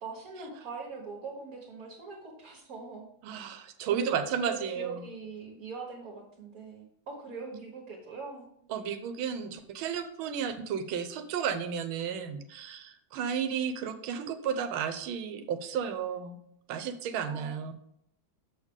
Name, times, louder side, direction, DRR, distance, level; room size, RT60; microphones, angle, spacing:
voice 1, 0.0-3.5 3.9-8.5 17.2-17.5, right 4 dB, 50° right, -3 dB, 1.6 m, -42 dB
voice 2, 3.2-5.1 8.7-16.4 16.7-17.7, right 7 dB, 85° right, 9 dB, 1.6 m, -33 dB
6.8 x 6.4 x 3.7 m, 0.74 s
omnidirectional pair, 2.2 m